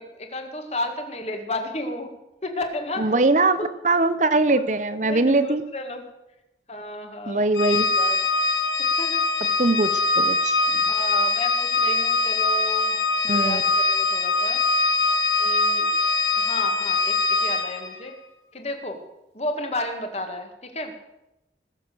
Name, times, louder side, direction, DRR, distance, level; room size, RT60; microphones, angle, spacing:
voice 1, 0.0-2.1 2.4-3.1 3.6-3.7 4.5-6.0 6.7-8.2 8.8-9.3 10.9-13.0 13.3-14.6 15.4-15.9 16.4-18.2 18.5-19.0 19.3-20.9, left 1 dB, 35° left, 5 dB, 1.9 m, -33 dB
voice 2, 3.0-3.6 3.8-5.6 7.3-7.9 9.6-10.8 13.2-13.6, right 2 dB, 45° right, 12 dB, 0.8 m, -21 dB
Organ, 7.5-18.0, left 3 dB, 90° left, 1.4 m, -22 dB
19.5 x 7.5 x 6.8 m, 0.95 s
head